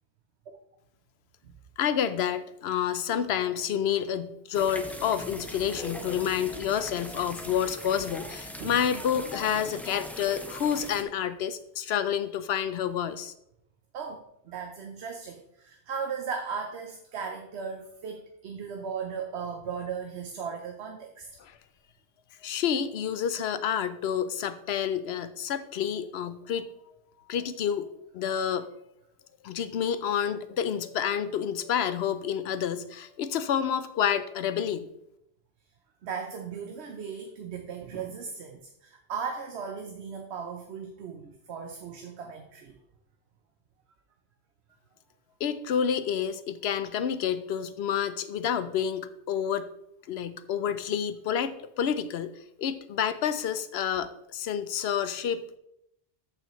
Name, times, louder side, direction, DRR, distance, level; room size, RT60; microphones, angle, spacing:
voice 1, 1.8-13.3 21.4-21.6 22.4-26.7 27.3-27.9 28.1-28.7 29.4-34.9 45.4-49.7 50.1-55.6, left 8 dB, 75° left, 13 dB, 0.9 m, -29 dB
sound 1, 4.5-11.0, equal, ahead, 0.5 m, -40 dB
voice 2, 13.9-21.3 36.0-42.7, right 6 dB, 90° right, 3 dB, 1.0 m, -37 dB
13.5 x 5.6 x 3.1 m, 0.80 s
omnidirectional pair, 1.1 m